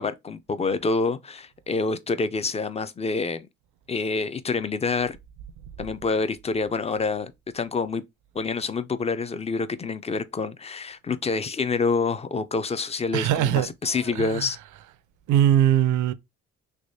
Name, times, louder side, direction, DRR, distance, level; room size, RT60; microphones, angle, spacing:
voice 1, 0.0-3.5 3.9-5.2 5.8-8.0 8.4-14.6, left 4 dB, 20° left, 0.4 m, -27 dB
voice 2, 13.1-14.5 15.3-16.1, right 11 dB, 75° right, 0.5 m, -22 dB
3.3 x 3.0 x 2.7 m
cardioid pair, 90°, 30 cm